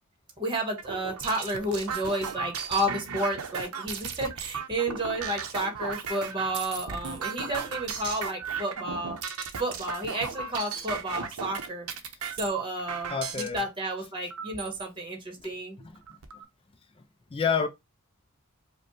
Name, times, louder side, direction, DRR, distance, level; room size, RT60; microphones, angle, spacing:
voice 1, 0.4-9.2 9.6-11.9 12.4-15.8, right 1 dB, 25° right, 1.1 m, -31 dB
sound 1, 0.8-13.6 14.3-14.8 15.4-15.5 15.8-16.4, right 6 dB, 85° right, 0.7 m, -36 dB
voice 2, 13.1-13.6 17.3-17.7, left 6 dB, 25° left, 0.4 m, -27 dB
5.0 x 2.2 x 3.1 m
head